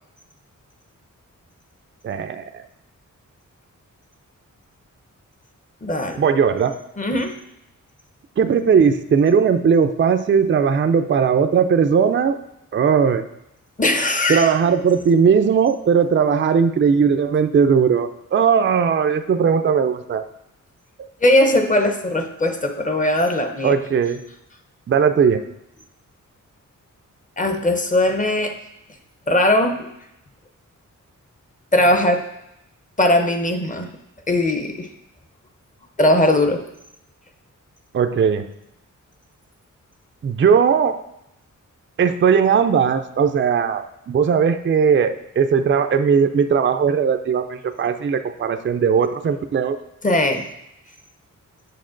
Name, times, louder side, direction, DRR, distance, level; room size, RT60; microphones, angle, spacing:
voice 1, 2.0-2.7 6.2-6.7 8.4-12.4 12.7-13.2 14.3-20.2 21.0-21.1 23.6-24.2 24.9-25.4 37.9-38.5 40.2-41.0 42.0-49.8, right 6 dB, 40° right, 8 dB, 0.4 m, -18 dB
voice 2, 5.8-6.2 7.0-7.4 13.8-14.5 21.2-23.8 27.4-28.6 29.3-29.9 31.7-32.2 33.0-33.9 34.3-34.9 36.0-36.6 50.0-50.5, left 1 dB, 25° left, 6 dB, 0.8 m, -19 dB
8.6 x 6.5 x 3.8 m, 0.83 s
wide cardioid pair, 155°, 31 cm